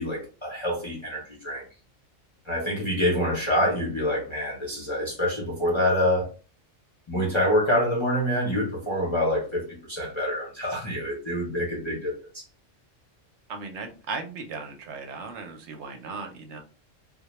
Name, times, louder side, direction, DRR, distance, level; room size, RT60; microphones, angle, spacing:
voice 1, 0.0-1.6 2.5-6.3 7.1-12.4, left 1 dB, 35° left, 0.5 m, -26 dB
voice 2, 13.5-16.6, right 4 dB, 70° right, 0.8 m, -37 dB
2.2 x 2.1 x 2.9 m
omnidirectional pair, 1.3 m